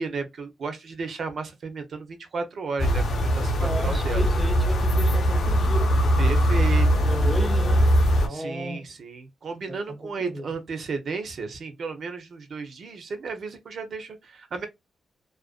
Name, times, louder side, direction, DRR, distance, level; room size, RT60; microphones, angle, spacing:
voice 1, 0.0-4.3 6.2-6.9 8.3-14.7, right 4 dB, 55° right, 0.6 m, -33 dB
sound 1, 2.8-8.3, equal, 65° left, 0.6 m, -21 dB
voice 2, 3.1-8.8 9.7-10.5, equal, 10° right, 0.4 m, -35 dB
2.4 x 2.1 x 2.4 m
cardioid pair, 115°, 0 cm